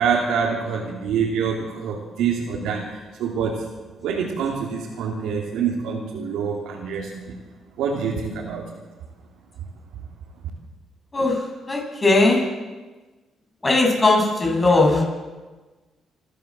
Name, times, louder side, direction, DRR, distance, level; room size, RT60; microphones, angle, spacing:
voice 1, 0.0-3.7 4.0-7.4 7.8-8.7, right 6 dB, 90° right, -2 dB, 3.1 m, -26 dB
voice 2, 11.7-12.5 13.6-15.0, left 2 dB, 25° left, 0 dB, 7.4 m, -18 dB
28.0 x 12.0 x 7.7 m, 1.3 s
cardioid pair, 90°, 0 cm